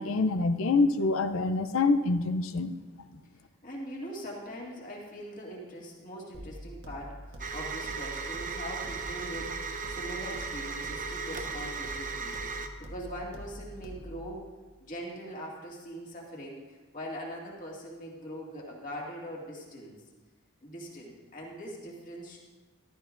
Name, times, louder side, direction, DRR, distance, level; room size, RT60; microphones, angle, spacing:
voice 1, 0.0-2.8, left 3 dB, 70° left, 10 dB, 0.5 m, -26 dB
voice 2, 3.6-12.4 12.8-14.5 14.8-19.9 20.6-22.4, equal, 35° left, -2 dB, 2.1 m, -42 dB
sound 1, 6.3-14.3, equal, 55° right, 1.4 m, -45 dB
sound 2, 7.4-12.7, right 5 dB, 35° right, 0.7 m, -36 dB
14.0 x 12.5 x 2.6 m, 1.3 s
head